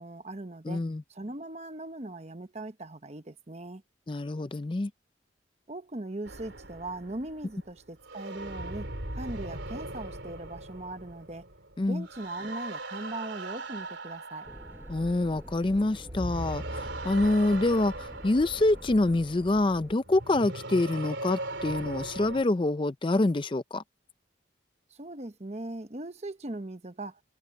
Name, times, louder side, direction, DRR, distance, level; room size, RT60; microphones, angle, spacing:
voice 1, 0.0-0.8 1.1-3.8 5.7-11.5 11.9-14.5 24.9-27.2, right 2 dB, 35° right, 1.0 m, -39 dB
voice 2, 0.7-1.0 4.1-4.9 11.8-12.1 14.9-23.8, left 2 dB, 25° left, 0.4 m, -26 dB
sound 1, 6.2-15.7 16.0-22.4, right 2 dB, 75° right, 3.5 m, -39 dB
sound 2, 14.4-19.9, equal, 10° right, 5.3 m, -46 dB
head